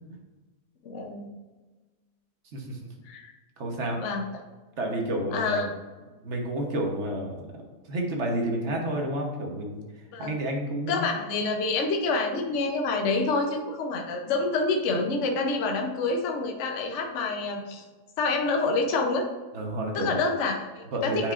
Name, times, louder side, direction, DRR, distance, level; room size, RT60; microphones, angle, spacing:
voice 1, 0.8-1.3 3.1-3.3 4.0-4.2 5.3-5.7 10.1-10.3 10.9-17.8 18.2-19.3 19.9-21.3, left 3 dB, 55° left, 2 dB, 1.0 m, -27 dB
voice 2, 3.6-4.0 4.8-5.7 6.2-7.4 7.9-9.8 10.2-11.0 19.5-20.2 20.9-21.3, right 1 dB, 50° right, 1 dB, 1.2 m, -30 dB
9.0 x 4.9 x 2.5 m, 1.3 s
omnidirectional pair, 1.7 m